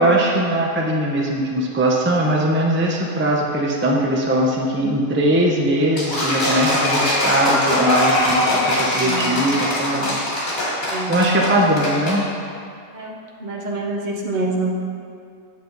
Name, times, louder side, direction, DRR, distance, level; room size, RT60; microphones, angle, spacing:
voice 1, 0.0-10.2 11.1-12.2, right 1 dB, 10° right, -2 dB, 0.6 m, -20 dB
sound 1, 6.0-12.2, left 1 dB, 70° left, 2.6 m, -21 dB
voice 2, 9.0-9.4 10.8-11.1 11.8-11.9 12.9-14.7, right 2 dB, 35° right, -1 dB, 1.0 m, -27 dB
8.4 x 7.2 x 4.0 m, 2.4 s
omnidirectional pair, 1.5 m